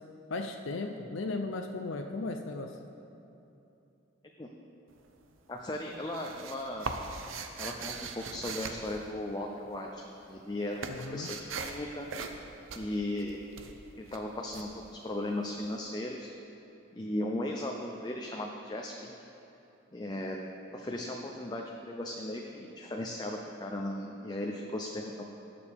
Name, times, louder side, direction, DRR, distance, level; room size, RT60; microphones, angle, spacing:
voice 1, 0.3-2.7 10.9-11.3, left 3 dB, 70° left, 5 dB, 0.5 m, -36 dB
sound 1, 4.9-5.4 5.7-9.8 10.0-15.6, right 4 dB, 80° right, 0.7 m, -41 dB
voice 2, 5.5-6.9 7.6-12.1 12.7-13.4 14.0-16.3 16.9-19.2 19.9-20.4 20.7-25.2, left 1 dB, 20° left, 0 dB, 0.5 m, -37 dB
18.0 x 6.8 x 3.5 m, 2.9 s
head